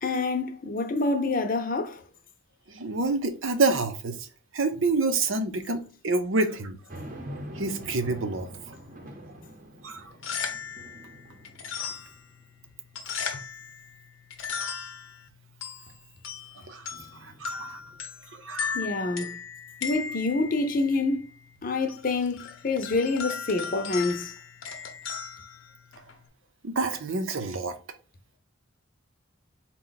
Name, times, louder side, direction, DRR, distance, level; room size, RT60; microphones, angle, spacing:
voice 1, 0.0-2.0 18.7-19.4 19.8-21.3 21.6-24.3, left 3 dB, 45° left, 0.6 m, -27 dB
voice 2, 2.7-4.3 4.5-6.8 7.5-8.8 9.8-10.1 16.7-16.9 17.2-17.8 18.3-18.8 26.6-27.7, right 3 dB, 85° right, 0.7 m, -28 dB
sound 1, 6.9-12.4 12.9-13.0 16.9-18.0, equal, 45° right, 0.8 m, -44 dB
sound 2, 10.0-26.3, left 6 dB, 90° left, 0.8 m, -38 dB
4.3 x 2.3 x 3.8 m
head